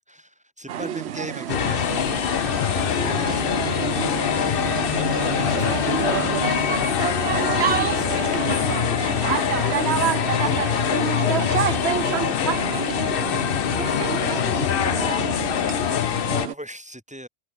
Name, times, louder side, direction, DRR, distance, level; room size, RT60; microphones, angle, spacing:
voice 1, 0.1-2.1 2.9-3.5 3.8-4.4 4.9-10.0 10.3-11.0 12.1-12.2 13.7-14.0 16.4-17.3, equal, 5° right, 5.5 m, -41 dB
sound 1, 0.7-16.5, right 10 dB, 80° right, 1.0 m, -28 dB
sound 2, 1.5-16.5, left 10 dB, 65° left, 0.8 m, -24 dB
Bowed string instrument, 2.8-8.2, right 5 dB, 35° right, 0.8 m, -35 dB
voice 2, 11.8-13.1 13.3-16.3, right 5 dB, 55° right, 1.6 m, -46 dB
omnidirectional pair, 1.1 m